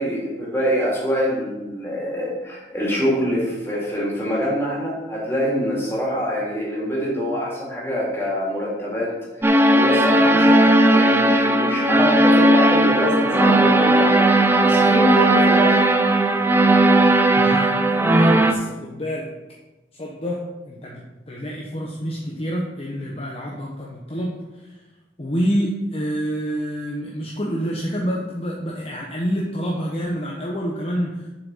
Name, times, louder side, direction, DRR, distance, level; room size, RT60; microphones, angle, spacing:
voice 1, 0.0-15.8, equal, 15° left, -6 dB, 3.4 m, -25 dB
sound 1, 9.4-18.5, right 1 dB, 15° right, 0.6 m, -16 dB
voice 2, 17.4-17.7 18.0-19.3 20.0-24.8 25.2-31.2, equal, 35° left, -3 dB, 1.1 m, -27 dB
7.2 x 6.8 x 5.7 m, 1.1 s
head